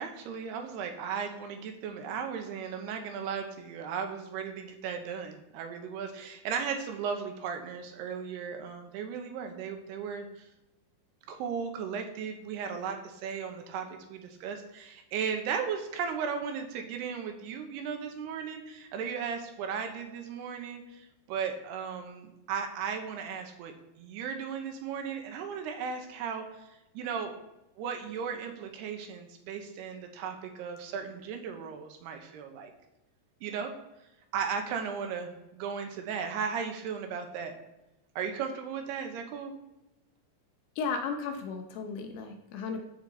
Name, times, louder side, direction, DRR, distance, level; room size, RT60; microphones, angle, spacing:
voice 1, 0.0-10.5 11.3-26.6 26.9-27.3 27.8-32.7 33.4-33.7 34.3-37.5 38.2-39.5, right 6 dB, 75° right, 5 dB, 3.0 m, -36 dB
voice 2, 40.8-42.8, left 5 dB, 80° left, 4 dB, 2.9 m, -34 dB
13.5 x 5.1 x 4.0 m, 0.96 s
omnidirectional pair, 4.9 m